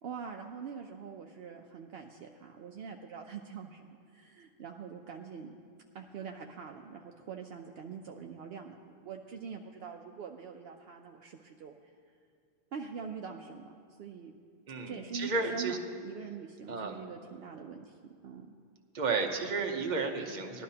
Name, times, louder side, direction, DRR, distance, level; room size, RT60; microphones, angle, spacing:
voice 1, 0.0-5.5 5.9-11.7 12.7-14.3 14.9-15.8 16.0-18.0 18.2-18.5, right 6 dB, 70° right, 2 dB, 0.8 m, -44 dB
voice 2, 14.7-15.8 16.7-17.0 18.9-20.6, right 4 dB, 45° right, 3 dB, 1.0 m, -32 dB
18.0 x 11.5 x 2.8 m, 2.2 s
omnidirectional pair, 1.1 m